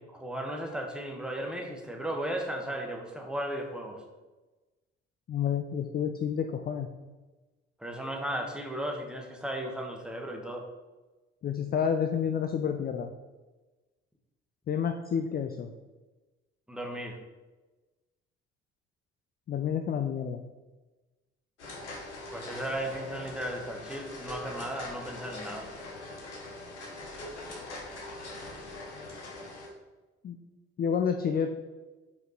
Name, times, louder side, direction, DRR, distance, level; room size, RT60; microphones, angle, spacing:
voice 1, 0.1-4.0 7.8-10.7 16.7-17.2 22.3-25.7, right 1 dB, ahead, 1 dB, 1.1 m, -35 dB
voice 2, 5.3-6.9 11.4-13.1 14.7-15.7 19.5-20.4 30.2-30.4 30.8-31.5, left 7 dB, 30° left, 6 dB, 0.4 m, -29 dB
sound 1, 21.6-29.7, left 2 dB, 85° left, 1.0 m, -42 dB
5.1 x 4.8 x 3.9 m, 1.2 s
figure-of-eight pair, 45°, 34 cm